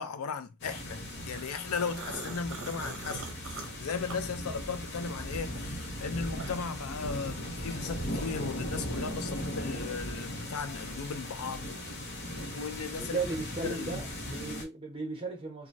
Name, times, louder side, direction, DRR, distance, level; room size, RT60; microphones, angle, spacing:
voice 1, 0.0-11.8 12.5-13.2 13.6-14.0, left 5 dB, 85° left, 0.4 m, -37 dB
sound 1, 0.6-14.6, equal, 55° left, 0.9 m, -38 dB
sound 2, 1.4-4.9 5.3-6.8, right 3 dB, 65° right, 0.7 m, -43 dB
voice 2, 13.0-15.7, right 3 dB, 25° right, 1.0 m, -36 dB
2.9 x 2.3 x 2.6 m
head